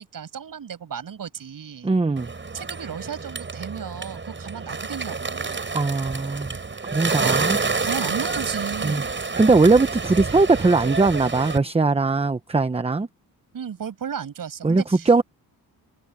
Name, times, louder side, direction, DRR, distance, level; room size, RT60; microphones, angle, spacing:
voice 1, 0.0-1.9 2.5-5.7 7.8-9.1 13.5-15.2, right 7 dB, 60° right, 7.3 m, -34 dB
voice 2, 1.8-2.3 5.7-6.6 6.9-7.6 8.8-9.0 9.4-13.1 14.6-15.2, right 3 dB, 15° right, 0.9 m, -20 dB
Bird, 2.2-11.6, right 4 dB, 30° right, 8.0 m, -28 dB
cardioid pair, 105°, 37 cm